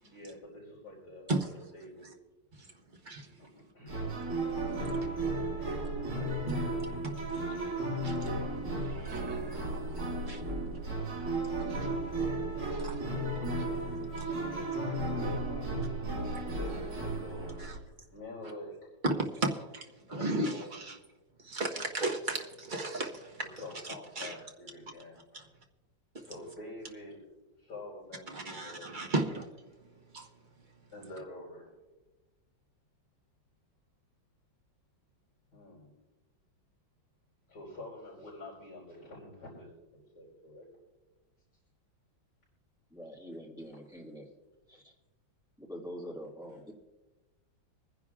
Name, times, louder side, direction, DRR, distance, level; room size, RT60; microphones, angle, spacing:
voice 1, 0.0-2.1 3.4-4.2 5.6-5.7 14.4-16.1 16.5-17.8 18.1-18.8 20.1-20.9 23.4-25.5 26.2-27.2 27.6-28.9 30.9-31.7 35.5-35.9 37.5-40.7, left 2 dB, 60° left, -7 dB, 5.1 m, -47 dB
sound 1, 3.9-17.8, right 2 dB, 70° right, 2.9 m, -34 dB
voice 2, 7.0-7.4 8.0-8.2 8.9-10.4 11.8-11.9 12.7-13.0 13.3-13.6 14.2-14.3 17.6-17.7 19.0-21.0 21.4-23.4 24.2-24.3 25.3-25.4 28.3-29.5 30.1-30.3, right 2 dB, 30° right, 1 dB, 1.1 m, -35 dB
voice 3, 42.9-44.3 44.7-44.9 45.6-46.7, equal, ahead, -3 dB, 1.8 m, -44 dB
25.5 x 10.5 x 2.4 m, 1.1 s
omnidirectional pair, 2.0 m